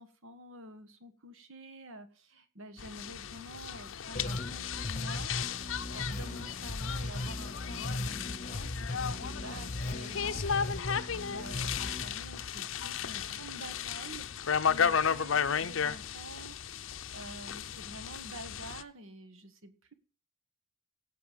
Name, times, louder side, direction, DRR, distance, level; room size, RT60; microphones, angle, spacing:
voice 1, 0.0-19.9, right 1 dB, 70° right, 10 dB, 1.4 m, -48 dB
sound 1, 2.8-18.8, left 7 dB, 65° left, 0.6 m, -34 dB
sound 2, 4.1-13.0, left 1 dB, 35° left, 0.9 m, -38 dB
17.0 x 6.8 x 5.1 m, 0.39 s
head